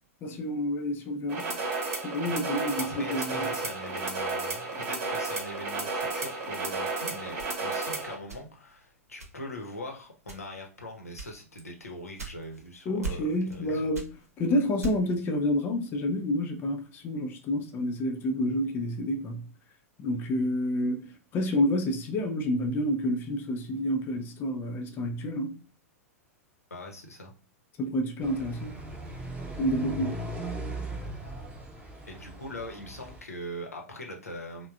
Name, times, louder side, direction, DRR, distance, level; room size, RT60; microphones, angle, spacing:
voice 1, 0.2-1.5 2.0-3.5 12.9-14.1 14.4-19.4 20.0-25.5 27.8-28.7 29.6-30.1, left 1 dB, 25° left, 0.4 m, -29 dB
sound 1, 1.3-8.1, right 3 dB, 45° right, 1.1 m, -32 dB
voice 2, 2.8-13.9 26.7-27.3 32.1-34.7, left 1 dB, 80° left, 0.7 m, -41 dB
sound 2, 7.4-8.8 9.2-9.7 10.2-10.7 11.2-12.7 13.0-13.6 13.9-15.2, right 4 dB, 75° right, 0.7 m, -39 dB
sound 3, 28.2-33.2, right 1 dB, 15° right, 0.7 m, -38 dB
3.3 x 2.1 x 2.3 m
figure-of-eight pair, 95°, 8 cm